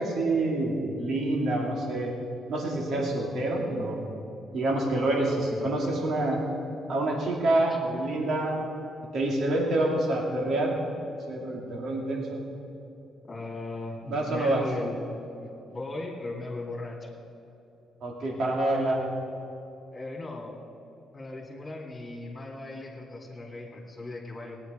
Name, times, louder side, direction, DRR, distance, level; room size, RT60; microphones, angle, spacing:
voice 1, 0.0-2.1 2.5-4.0 4.5-6.4 6.9-8.6 9.1-10.8 11.3-12.4 14.0-14.6 18.0-19.0, right 2 dB, 65° right, -1 dB, 2.6 m, -27 dB
voice 2, 5.2-5.9 13.3-14.9 15.4-17.1 19.9-20.5 21.1-24.6, left 2 dB, 30° left, -2 dB, 2.6 m, -38 dB
17.5 x 9.7 x 5.2 m, 2.9 s
cardioid pair, 90°, 0 cm